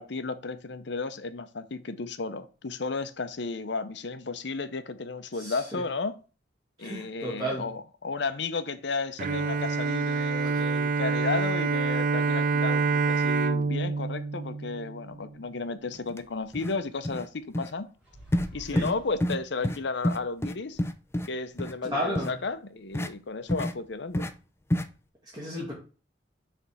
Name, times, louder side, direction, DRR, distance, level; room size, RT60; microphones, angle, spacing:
voice 1, 0.0-6.2 6.8-17.9 18.5-20.8 21.3-24.3, left 4 dB, 70° left, 0.7 m, -33 dB
voice 2, 5.3-5.8 6.8-7.7 10.4-10.6 18.7-18.9 21.8-22.4 25.3-25.7, equal, 25° right, 2.3 m, -33 dB
Bowed string instrument, 9.2-15.4, right 4 dB, 50° right, 0.4 m, -27 dB
sound 1, 16.1-16.2 16.5-16.8 17.0-17.3 17.5-17.7 18.3-18.5 18.8-18.9 19.2-19.4 19.6-19.8 20.0-21.3 21.6-21.7 22.1-22.3 22.9-23.1 23.5-23.7 24.1-24.3 24.7-24.9, left 1 dB, 15° left, 0.5 m, -28 dB
sound 2, 18.0-19.7, equal, 5° right, 3.2 m, -46 dB
6.8 x 3.5 x 6.2 m
head